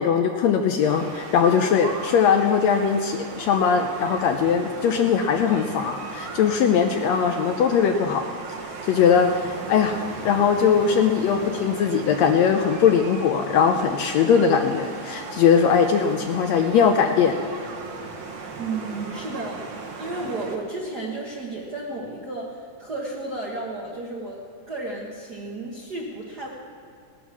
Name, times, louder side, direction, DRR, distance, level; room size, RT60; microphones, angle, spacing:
voice 1, 0.0-8.2 8.8-17.3, left 7 dB, 75° left, 5 dB, 1.7 m, -20 dB
sound 1, 0.8-20.6, right 4 dB, 70° right, 2.7 m, -37 dB
voice 2, 18.6-24.4 24.7-26.5, right 2 dB, 50° right, -3 dB, 1.2 m, -33 dB
18.0 x 10.0 x 6.0 m, 2.3 s
omnidirectional pair, 3.5 m